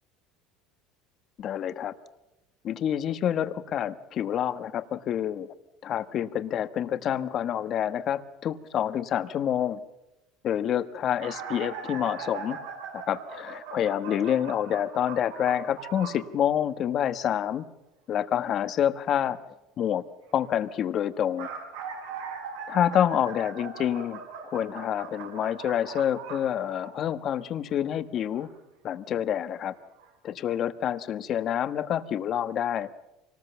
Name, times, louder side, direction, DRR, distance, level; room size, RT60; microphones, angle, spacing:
voice 1, 1.4-1.9 2.6-5.5 5.8-9.8 10.4-12.6 12.9-17.6 18.1-19.4 19.8-20.0 20.3-21.5 22.7-24.2 24.5-28.5 28.8-29.7 30.2-32.9, left 10 dB, 45° left, 11 dB, 1.3 m, -27 dB
sound 1, 11.2-16.2 21.1-27.2 28.3-28.5 29.5-29.6 30.0-30.1, right 6 dB, 90° right, 5.1 m, -40 dB
24.5 x 19.5 x 7.1 m, 0.94 s
supercardioid pair, 115°, 0 cm